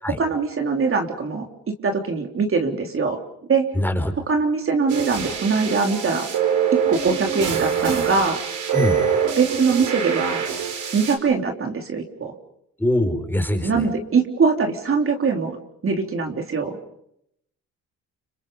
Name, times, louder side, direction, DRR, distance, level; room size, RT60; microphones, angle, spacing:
voice 1, 0.2-1.5 1.8-3.2 3.5-3.7 4.3-6.3 6.9-8.4 9.4-10.4 10.9-12.3 13.6-16.8, right 4 dB, 45° right, 3 dB, 3.5 m, -22 dB
voice 2, 3.7-4.1 8.7-9.0 12.8-13.9, left 1 dB, 5° left, 6 dB, 4.7 m, -23 dB
sound 1, 4.9-11.1, right 7 dB, 75° right, 5.3 m, -24 dB
30.0 x 26.5 x 5.5 m, 0.76 s
cardioid pair, 90°, 30 cm